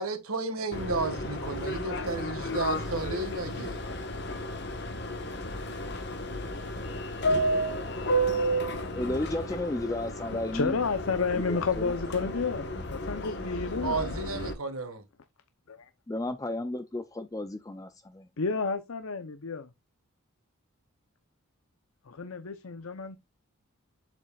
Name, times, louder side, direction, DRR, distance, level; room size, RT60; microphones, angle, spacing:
voice 1, 0.0-3.8 13.8-15.0, right 3 dB, 85° right, 1.7 m, -33 dB
Subway metro underground, 0.7-14.5, equal, 50° left, 1.3 m, -32 dB
voice 2, 9.0-10.8 11.3-11.9 16.1-18.3, left 1 dB, 15° left, 0.4 m, -33 dB
voice 3, 10.5-14.1 15.7-15.9 18.4-19.7 22.1-23.2, left 4 dB, 75° left, 0.7 m, -31 dB
7.7 x 7.5 x 2.4 m
head